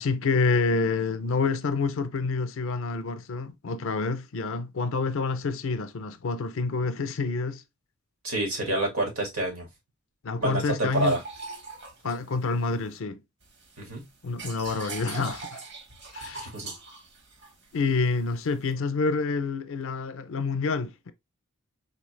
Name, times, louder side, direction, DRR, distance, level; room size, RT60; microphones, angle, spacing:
voice 1, 0.0-7.6 10.2-11.2 12.0-13.2 14.2-15.6 16.1-16.5 17.7-21.1, left 4 dB, 65° left, 0.5 m, -28 dB
voice 2, 8.2-9.7 10.4-11.2 13.8-14.0 16.5-16.7, right 2 dB, 80° right, 2.2 m, -27 dB
sound 1, 10.9-13.0 13.4-18.7, right 4 dB, 55° right, 1.1 m, -42 dB
4.2 x 2.8 x 3.1 m
head